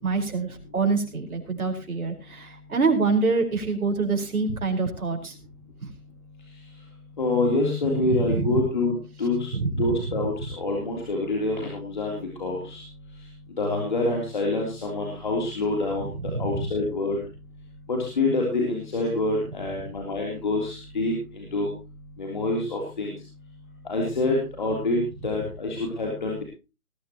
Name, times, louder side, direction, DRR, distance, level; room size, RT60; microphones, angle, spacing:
voice 1, 0.0-5.3 5.8-5.9 8.2-8.6 9.5-9.7 16.2-16.6, right 4 dB, 70° right, 3 dB, 5.1 m, -26 dB
voice 2, 7.2-8.9 9.2-9.5 9.8-12.8 13.6-16.1 16.4-17.2 17.9-21.7 22.2-23.1 23.9-26.4, left 2 dB, 30° left, -1 dB, 3.5 m, -26 dB
20.0 x 12.0 x 3.0 m, 0.30 s
hypercardioid pair, 175°, 45 cm